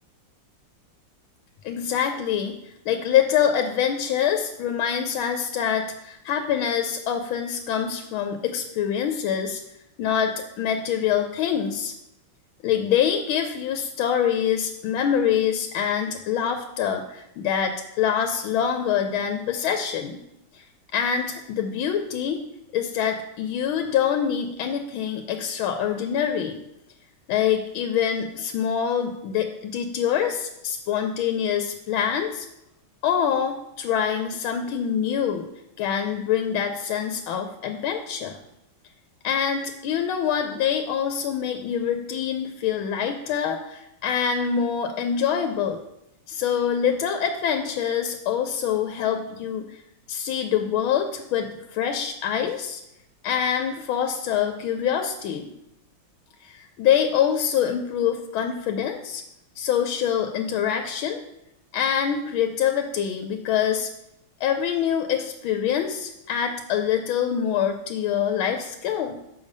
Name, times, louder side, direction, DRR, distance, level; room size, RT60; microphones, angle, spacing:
voice 1, 1.6-2.6 2.9-9.6 10.0-11.9 12.6-20.2 20.5-20.6 20.9-22.4 22.7-26.6 27.3-32.5 33.0-35.5 35.8-38.4 39.2-45.8 46.3-49.8 50.1-52.8 53.2-55.5 56.4-59.2 59.6-61.2 61.7-63.9 64.4-69.2, left 8 dB, 90° left, 6 dB, 1.4 m, -25 dB
6.7 x 4.9 x 5.3 m, 0.84 s
omnidirectional pair, 2.2 m